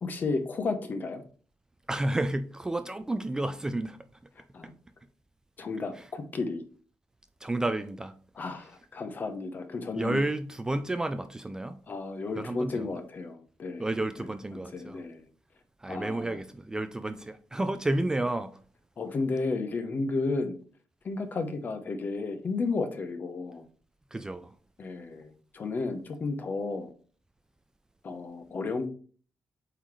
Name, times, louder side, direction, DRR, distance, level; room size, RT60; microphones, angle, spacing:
voice 1, 0.0-1.2 4.4-4.7 5.6-6.6 8.4-10.2 11.9-13.9 14.2-14.3 14.5-15.2 15.9-16.4 19.0-20.6 21.0-23.6 24.8-26.9 28.0-28.9, left 3 dB, 40° left, 0.9 m, -33 dB
voice 2, 1.9-4.0 6.0-6.1 7.4-8.1 9.9-11.8 12.4-13.0 13.8-15.0 15.8-18.5 24.1-24.5, right 2 dB, 15° right, 0.3 m, -31 dB
8.0 x 4.0 x 3.1 m
cardioid pair, 140°, 5 cm